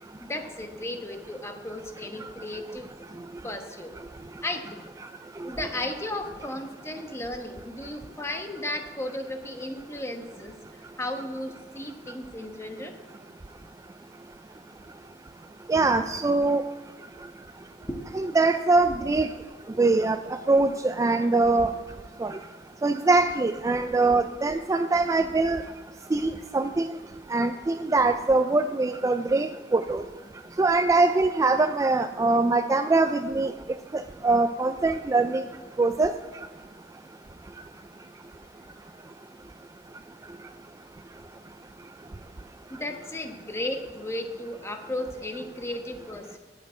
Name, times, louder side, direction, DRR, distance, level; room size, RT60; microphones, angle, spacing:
voice 1, 0.2-2.9 3.4-3.9 4.4-4.9 5.4-10.5 11.0-13.0 15.7-16.0 17.2-17.3 17.9-18.1 22.4-22.5 42.7-46.4, left 1 dB, 15° left, 4 dB, 1.1 m, -35 dB
voice 2, 15.7-16.6 18.4-19.3 19.8-20.2 20.5-21.7 22.2-22.4 22.8-25.6 26.1-26.9 27.3-30.0 30.6-33.5 33.9-35.4 35.8-36.1, right 3 dB, 20° right, 9 dB, 0.3 m, -23 dB
9.5 x 7.5 x 9.3 m, 1.3 s
head